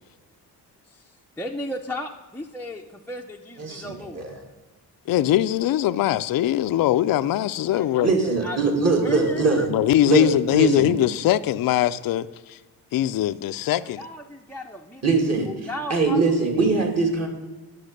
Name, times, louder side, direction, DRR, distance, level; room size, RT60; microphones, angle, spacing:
voice 1, 0.9-4.3 7.7-8.7 9.0-9.7 13.8-15.0 15.5-16.9, left 1 dB, 5° left, -1 dB, 0.5 m, -35 dB
voice 2, 3.6-4.3 8.0-9.7 10.0-10.9 15.0-15.5 15.9-17.3, right 4 dB, 40° right, 2 dB, 2.2 m, -22 dB
voice 3, 5.1-8.1 9.7-12.6 12.9-14.0, left 12 dB, 60° left, 12 dB, 0.5 m, -21 dB
10.5 x 6.2 x 6.5 m, 1.3 s
cardioid pair, 115°, 40 cm